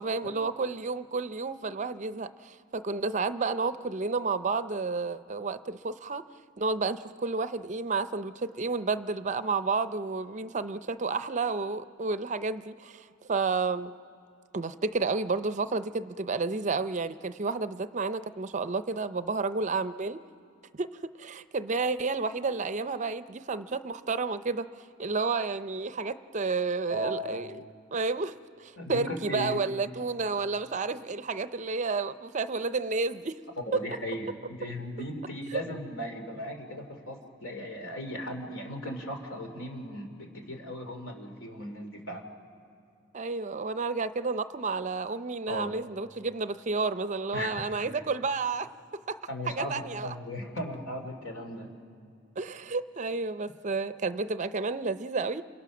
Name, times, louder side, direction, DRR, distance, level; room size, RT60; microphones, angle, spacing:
voice 1, 0.0-6.2 6.6-13.9 14.5-20.2 20.7-24.7 25.0-27.6 27.9-33.4 33.7-33.8 35.5-35.6 43.1-48.7 49.1-49.2 49.5-50.1 52.4-55.4, right 4 dB, 35° right, 12 dB, 0.5 m, -31 dB
voice 2, 26.9-27.4 28.8-29.6 33.7-42.2 45.5-45.8 47.3-47.6 49.3-51.7, equal, 75° left, 3 dB, 2.8 m, -37 dB
29.0 x 26.5 x 6.2 m, 2.4 s
head